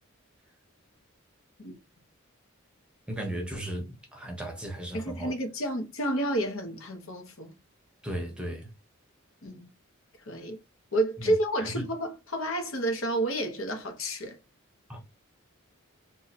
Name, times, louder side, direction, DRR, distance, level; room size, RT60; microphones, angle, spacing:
voice 1, 3.1-5.4 8.0-8.7 11.2-11.3 11.6-11.8 14.9-15.0, right 1 dB, 5° right, 0.8 m, -36 dB
voice 2, 4.9-7.6 9.4-9.7 10.3-10.6 10.9-14.4, right 1 dB, 75° left, 0.9 m, -30 dB
2.7 x 2.3 x 4.0 m
head